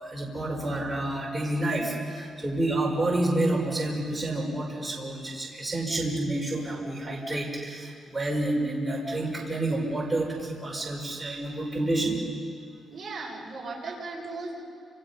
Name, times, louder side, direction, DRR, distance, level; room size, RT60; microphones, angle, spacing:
voice 1, 0.0-12.2, right 1 dB, 10° right, -2 dB, 5.2 m, -29 dB
voice 2, 12.9-14.6, right 3 dB, 35° right, -4 dB, 7.0 m, -37 dB
30.0 x 27.0 x 5.8 m, 2.3 s
cardioid pair, 130°, 0 cm